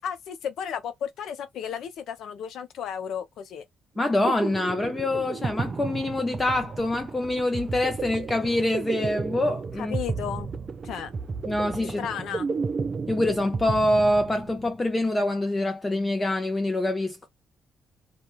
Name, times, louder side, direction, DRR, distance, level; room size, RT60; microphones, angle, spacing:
voice 1, 0.0-3.6 9.8-10.5 10.8-11.1 12.0-12.5, left 8 dB, 75° left, 0.6 m, -33 dB
voice 2, 4.0-9.9 11.5-12.1 13.1-17.3, left 1 dB, 20° left, 0.5 m, -25 dB
sound 1, 4.0-14.8, right 4 dB, 45° right, 0.4 m, -33 dB
2.3 x 2.2 x 2.9 m
cardioid pair, 90°, 0 cm